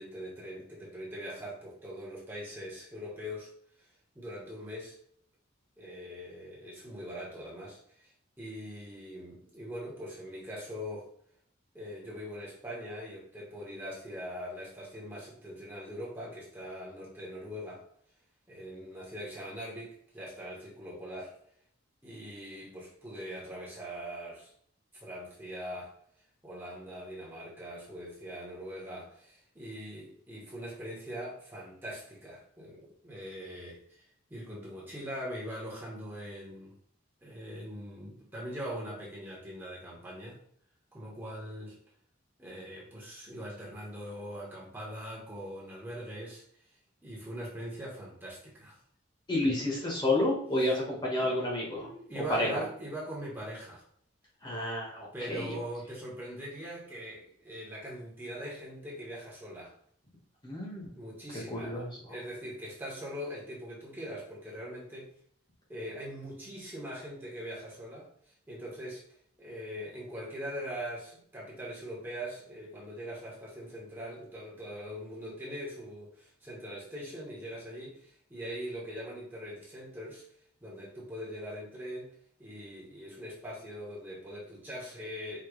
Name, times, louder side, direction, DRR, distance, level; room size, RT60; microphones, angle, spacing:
voice 1, 0.0-3.5 3.8-3.9 4.1-5.0 5.8-11.1 11.7-17.8 18.5-21.3 22.0-24.5 24.9-25.9 26.4-34.0 34.3-36.8 37.2-40.4 40.9-41.8 42.4-46.4 47.0-48.8 50.6-50.8 51.2-51.3 51.7-53.8 55.1-59.7 61.0-65.1 65.7-68.1 68.5-69.0 69.4-80.2 80.6-82.1 82.4-85.4, equal, 10° right, -6 dB, 1.2 m, -42 dB
voice 2, 49.3-51.9 52.3-52.6 54.4-55.6 60.4-60.9 61.5-61.9, left 1 dB, 20° left, -4 dB, 1.2 m, -30 dB
4.8 x 3.1 x 3.1 m, 0.64 s
head